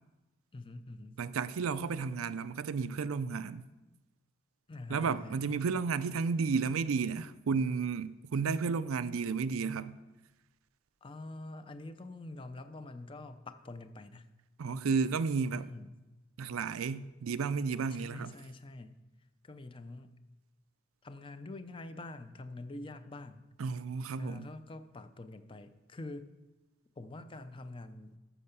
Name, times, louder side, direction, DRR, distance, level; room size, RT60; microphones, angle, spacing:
voice 1, 0.5-1.2 4.7-5.4 11.0-14.3 15.5-16.0 17.9-19.0 19.4-20.2 21.0-23.5 24.2-26.3 27.0-28.2, left 2 dB, 25° left, 0.5 m, -46 dB
voice 2, 1.2-3.6 4.9-10.0 14.6-15.7 16.4-18.4 23.6-24.5, right 5 dB, 85° right, 0.5 m, -32 dB
12.5 x 5.6 x 6.7 m
head